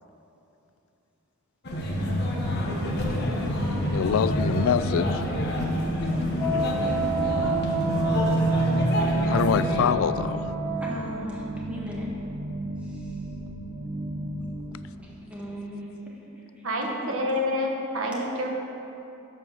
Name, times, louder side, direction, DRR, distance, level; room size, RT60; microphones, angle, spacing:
sound 1, 1.6-9.8, equal, 50° left, 1.1 m, -26 dB
sound 2, 1.9-14.8, right 1 dB, 40° right, 0.6 m, -35 dB
voice 1, 3.9-5.2 9.2-10.4, left 7 dB, 70° left, 14 dB, 0.3 m, -25 dB
voice 2, 6.0-7.0 10.8-12.1 12.8-13.3 15.0-16.3 16.6-17.1, equal, 5° right, -5 dB, 1.4 m, -39 dB
Wind instrument woodwind instrument, 6.3-11.1, right 3 dB, 10° left, 1.4 m, -30 dB
voice 3, 16.6-18.5, left 1 dB, 70° right, 0 dB, 1.2 m, -28 dB
7.8 x 5.5 x 6.2 m, 2.9 s
head